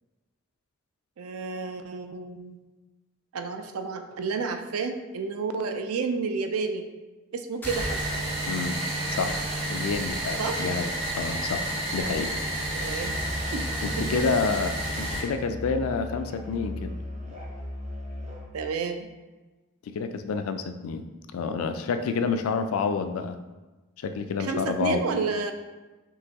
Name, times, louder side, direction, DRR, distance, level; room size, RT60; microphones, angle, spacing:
voice 1, 1.2-2.6 3.3-6.9 7.3-8.0 10.4-10.7 12.1-12.3 12.8-13.2 13.5-13.7 14.0-14.2 18.5-19.1 24.4-25.5, right 4 dB, 85° right, 7 dB, 0.4 m, -31 dB
sound 1, 7.6-8.7, left 1 dB, 10° left, 0.4 m, -44 dB
sound 2, 7.6-15.2, right 1 dB, 50° right, 1.2 m, -30 dB
voice 2, 8.5-8.8 9.1-9.4 9.7-12.3 13.8-17.0 19.9-23.4 24.0-25.0, left 5 dB, 80° left, 9 dB, 0.3 m, -29 dB
Musical instrument, 13.0-18.5, left 1 dB, 35° right, 0.6 m, -37 dB
5.4 x 3.0 x 2.8 m, 1.2 s
head